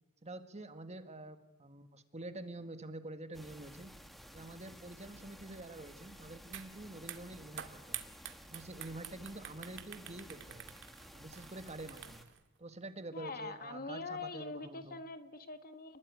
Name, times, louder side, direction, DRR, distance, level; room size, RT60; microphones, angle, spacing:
voice 1, 0.2-3.9 4.3-8.0 8.5-10.7 11.1-12.3 12.6-15.0, right 2 dB, 30° right, 9 dB, 1.7 m, -47 dB
sound 1, 3.3-12.2, equal, ahead, 1.9 m, -54 dB
sound 2, 6.5-6.7 7.0-12.4, right 11 dB, 55° right, 2.0 m, -47 dB
voice 2, 13.1-16.0, left 3 dB, 40° left, 9 dB, 1.7 m, -43 dB
29.0 x 20.5 x 9.6 m, 1.0 s
head